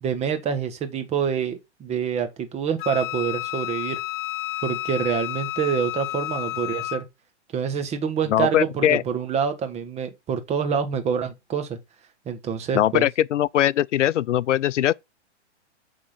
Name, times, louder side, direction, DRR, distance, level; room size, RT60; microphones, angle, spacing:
voice 1, 0.0-4.0 4.6-7.0 7.5-11.8 12.3-13.1, right 7 dB, 20° right, 1.2 m, -26 dB
Wind instrument woodwind instrument, 2.8-7.0, left 16 dB, 45° left, 0.6 m, -31 dB
voice 2, 8.3-9.0 12.7-14.9, left 12 dB, 85° left, 0.5 m, -21 dB
8.4 x 3.8 x 5.8 m
hypercardioid pair, 135°, 36 cm